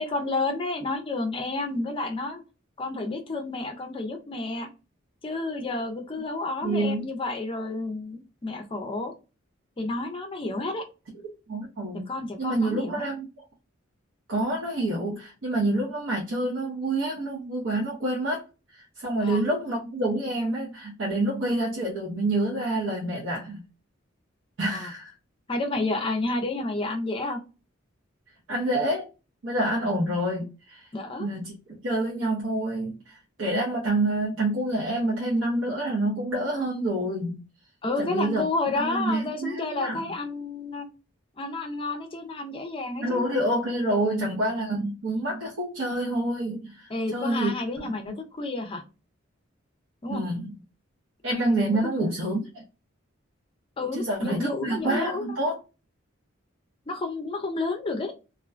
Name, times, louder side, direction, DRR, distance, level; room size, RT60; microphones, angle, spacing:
voice 1, 0.0-2.4 2.8-4.7 5.2-9.1 9.8-10.8 12.1-13.1 19.2-19.4 24.7-24.9 25.5-27.4 29.8-30.2 30.9-31.3 37.8-40.9 41.4-43.2 44.1-44.3 46.9-48.8 50.0-50.2 51.8-52.1 53.8-55.4 56.9-58.1, left 2 dB, 25° left, 5 dB, 0.4 m, -30 dB
voice 2, 6.6-7.1 11.5-12.0 12.4-13.3 14.3-18.4 18.7-23.6 24.6-25.1 28.5-29.1 29.4-30.8 31.2-31.5 31.8-37.4 38.0-38.4 38.8-40.1 43.0-47.5 47.8-48.2 50.1-50.5 51.2-52.5 53.9-55.6, right 1 dB, 70° right, -4 dB, 0.7 m, -27 dB
2.4 x 2.1 x 2.4 m, 0.31 s
head